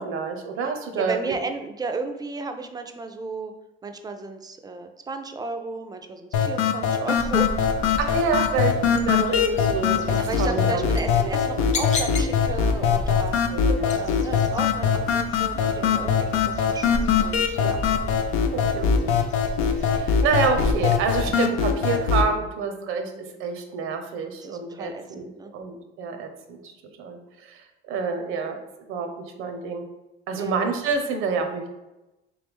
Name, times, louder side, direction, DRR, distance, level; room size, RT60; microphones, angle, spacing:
voice 1, 0.0-1.3 8.0-11.3 13.5-13.9 17.6-18.1 18.5-19.1 19.6-26.6 27.0-28.6 28.9-29.8 30.3-31.7, right 5 dB, 80° right, 5 dB, 0.6 m, -28 dB
voice 2, 1.0-3.5 3.8-7.6 10.2-17.8 24.4-25.5 30.4-30.5, right 3 dB, 20° right, 6 dB, 0.4 m, -34 dB
sound 1, 6.3-22.3, left 6 dB, 80° left, 0.5 m, -22 dB
sound 2, 7.2-21.3, left 3 dB, 35° left, 0.6 m, -34 dB
3.3 x 3.1 x 3.5 m, 0.99 s
cardioid pair, 115°, 21 cm